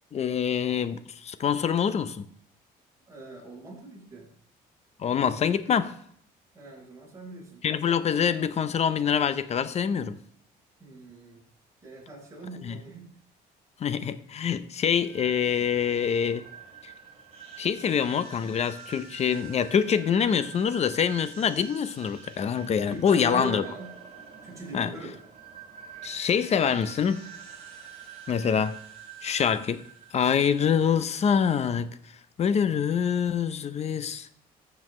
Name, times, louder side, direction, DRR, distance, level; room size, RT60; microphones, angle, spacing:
voice 1, 0.1-2.3 5.0-5.9 7.6-10.2 12.6-12.8 13.8-16.4 17.6-23.6 24.7-24.9 26.0-27.2 28.3-28.8 29.2-29.8 30.1-31.9 32.4-34.3, left 7 dB, 40° left, 0.6 m, -25 dB
voice 2, 3.1-4.3 6.5-7.6 10.8-11.4 11.8-13.1 22.9-24.0 24.4-25.2, right 2 dB, 20° right, 4.3 m, -40 dB
sound 1, 15.0-31.0, right 7 dB, 40° right, 3.3 m, -46 dB
14.0 x 7.0 x 3.1 m
cardioid pair, 110°, 17 cm